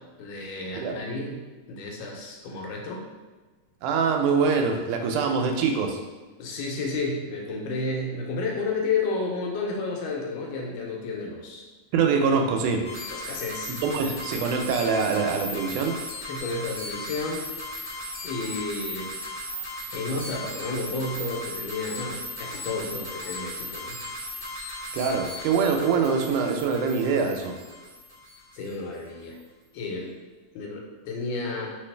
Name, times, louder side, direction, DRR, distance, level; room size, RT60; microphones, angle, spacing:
voice 1, 0.2-1.4 1.7-3.0 6.4-11.6 13.1-14.1 16.3-17.4 18.2-19.1 19.9-24.0 28.5-29.4 29.7-30.1 30.5-31.8, left 3 dB, 80° left, 0 dB, 2.2 m, -31 dB
voice 2, 3.8-6.0 11.9-12.8 13.8-16.0 24.9-27.6, right 5 dB, 80° right, 3 dB, 2.0 m, -24 dB
sound 1, 12.8-28.7, left 1 dB, 45° left, 0.9 m, -37 dB
4.1 x 3.8 x 3.2 m, 1.3 s
omnidirectional pair, 3.6 m